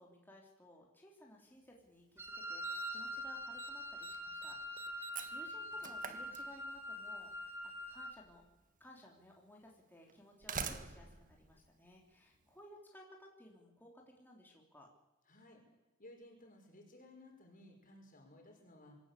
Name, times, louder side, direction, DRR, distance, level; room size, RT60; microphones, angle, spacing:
voice 1, 0.0-7.5 7.9-8.4 8.8-14.9, left 1 dB, 10° left, -1 dB, 3.4 m, -59 dB
Slam, 1.8-1.9 2.6-3.1 3.4-3.7 4.0-7.0 8.1-8.2 9.1-9.2 10.1-12.4, right 6 dB, 40° right, 1.5 m, -46 dB
Wind instrument woodwind instrument, 2.2-8.2, equal, 10° right, 2.4 m, -44 dB
voice 2, 15.3-15.6 16.0-19.0, left 1 dB, 45° left, 2 dB, 5.8 m, -58 dB
25.5 x 15.5 x 8.5 m, 0.99 s
head